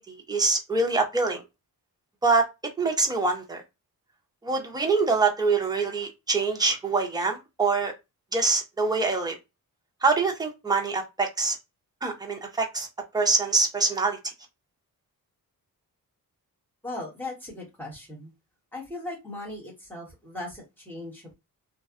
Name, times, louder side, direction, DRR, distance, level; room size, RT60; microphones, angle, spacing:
voice 1, 0.0-1.4 2.2-2.5 2.8-3.6 4.4-7.9 8.3-9.4 10.0-11.6 12.0-12.9 13.1-14.2, right 3 dB, 10° right, 0.5 m, -25 dB
voice 2, 16.8-18.3 18.7-21.3, left 2 dB, 5° left, 1.1 m, -38 dB
2.7 x 2.2 x 2.4 m
wide cardioid pair, 165°, 34 cm